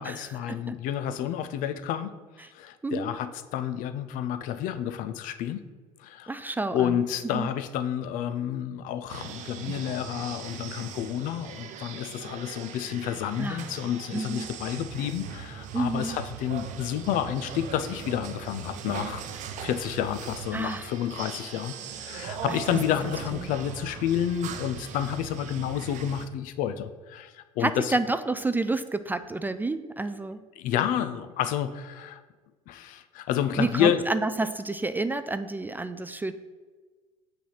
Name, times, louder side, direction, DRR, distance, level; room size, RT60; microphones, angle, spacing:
voice 1, 0.0-2.1 2.5-5.6 6.0-6.4 6.7-19.2 19.6-27.9 30.6-32.2 32.7-34.0, left 10 dB, 55° left, 12 dB, 0.5 m, -30 dB
voice 2, 2.8-3.1 6.3-7.0 7.3-7.5 13.4-13.7 14.1-14.5 15.7-16.2 20.5-20.9 22.5-22.8 23.3-23.5 27.6-30.4 33.6-36.3, right 2 dB, 10° right, 11 dB, 0.3 m, -29 dB
sound 1, 9.1-26.3, right 7 dB, 50° right, 0.6 m, -39 dB
6.0 x 3.5 x 5.9 m, 1.4 s
hypercardioid pair, 70°, 16 cm